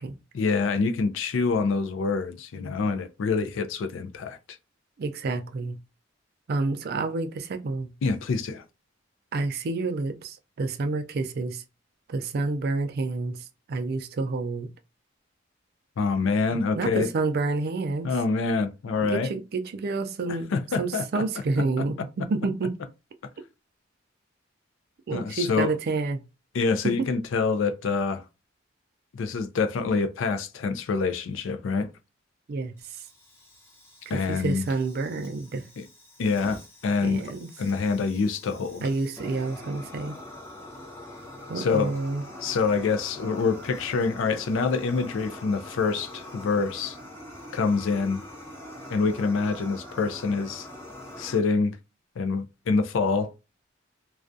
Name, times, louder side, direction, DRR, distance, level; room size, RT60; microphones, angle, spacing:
voice 1, 0.3-4.6 8.0-8.6 16.0-17.1 18.0-19.3 20.3-21.2 25.1-25.7 26.5-28.2 29.1-31.9 34.1-34.7 35.8-35.9 36.2-37.2 37.6-38.8 41.6-41.9 42.4-47.0 47.5-48.2 48.9-50.7 51.2-51.8 52.2-53.3, left 4 dB, 70° left, 0.4 m, -26 dB
voice 2, 5.0-5.8 6.5-7.9 9.3-11.6 12.1-13.4 13.7-14.7 16.5-18.1 19.0-20.5 20.8-22.0 22.3-22.7 25.1-26.2 26.8-27.1 32.5-33.0 34.1-35.7 37.0-37.5 38.8-40.2 41.5-42.2, right 3 dB, 50° right, 0.4 m, -29 dB
Fire, 32.8-51.4, left 1 dB, 15° left, 0.8 m, -44 dB
2.3 x 2.2 x 2.5 m
head